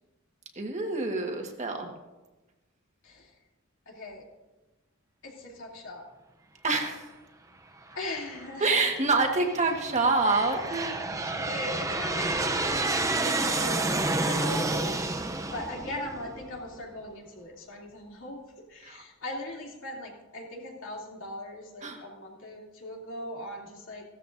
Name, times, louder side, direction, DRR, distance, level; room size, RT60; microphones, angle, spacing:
voice 1, 0.6-1.9 6.6-7.1 8.6-10.9 18.8-19.0 21.8-22.0, right 3 dB, 35° right, 2 dB, 1.5 m, -26 dB
voice 2, 3.9-4.3 5.2-6.1 7.9-8.8 11.3-18.4 18.7-24.1, left 1 dB, 70° left, -1 dB, 2.9 m, -39 dB
Aircraft, 7.9-8.5 9.2-16.8, right 2 dB, 15° right, 0.6 m, -30 dB
16.5 x 13.5 x 2.6 m, 1.1 s
head